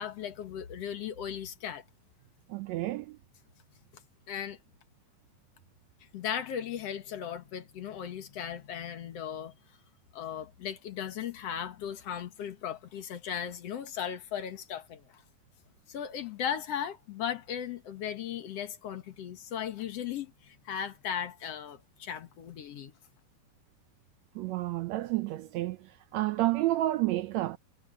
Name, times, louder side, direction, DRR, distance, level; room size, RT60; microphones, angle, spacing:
voice 1, 0.0-1.8 3.9-4.0 4.3-4.6 6.1-9.5 10.1-15.2 15.9-22.9, left 9 dB, 55° left, 2.1 m, -37 dB
voice 2, 2.5-3.2 24.3-27.6, right 16 dB, 80° right, 1.6 m, -30 dB
omnidirectional pair, 3.8 m